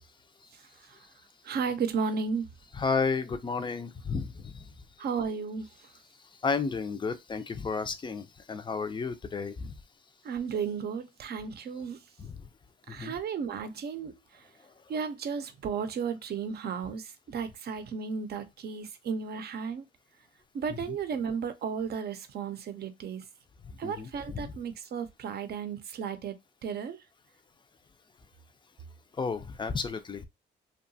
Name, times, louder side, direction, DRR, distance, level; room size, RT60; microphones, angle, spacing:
voice 1, 1.4-2.5 5.0-5.7 10.2-12.0 12.9-14.1 14.9-19.8 20.5-23.2 23.8-26.3 26.6-27.0, right 6 dB, 55° right, 0.6 m, -34 dB
voice 2, 2.7-4.7 6.4-9.7 12.2-12.5 12.9-13.1 20.9-21.0 23.8-24.6 29.2-30.3, left 5 dB, 25° left, 0.4 m, -32 dB
2.8 x 2.2 x 2.6 m
cardioid pair, 90°, 20 cm